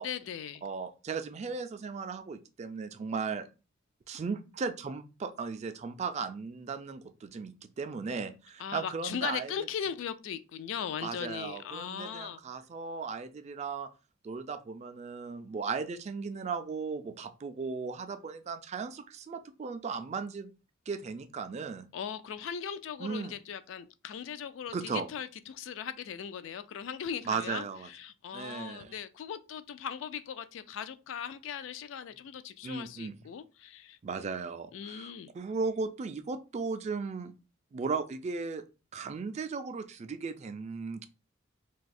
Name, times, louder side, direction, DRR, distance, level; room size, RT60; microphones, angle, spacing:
voice 1, 0.0-0.6 8.6-12.4 21.9-34.0 34.7-35.3, left 8 dB, 65° left, 0.3 m, -39 dB
voice 2, 0.6-3.5 4.1-9.7 11.0-13.9 14.2-20.5 20.9-21.9 23.0-23.4 24.7-25.1 27.3-27.9 28.3-28.9 32.6-33.2 34.0-37.3 37.7-38.6 38.9-41.1, right 5 dB, 35° right, 0.3 m, -36 dB
2.7 x 2.3 x 4.1 m
head